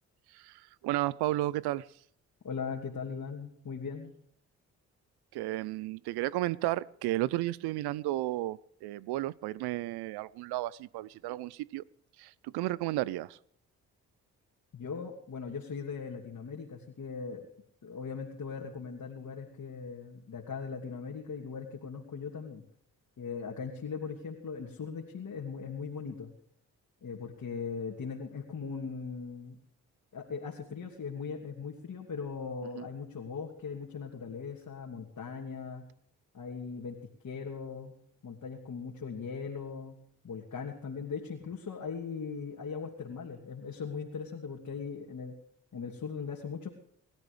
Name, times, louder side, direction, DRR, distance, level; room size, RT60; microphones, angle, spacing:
voice 1, 0.3-1.9 5.3-11.8 12.2-13.4 32.7-32.9, right 16 dB, 80° right, 22 dB, 0.8 m, -33 dB
voice 2, 2.4-4.1 14.7-17.5 17.8-22.6 23.2-26.3 27.0-29.6 30.1-35.9 36.3-37.0 37.2-37.9 38.2-40.0 40.2-45.4 45.7-46.7, left 5 dB, 50° left, 0 dB, 2.9 m, -39 dB
28.5 x 13.5 x 3.4 m, 0.67 s
supercardioid pair, 50°, 38 cm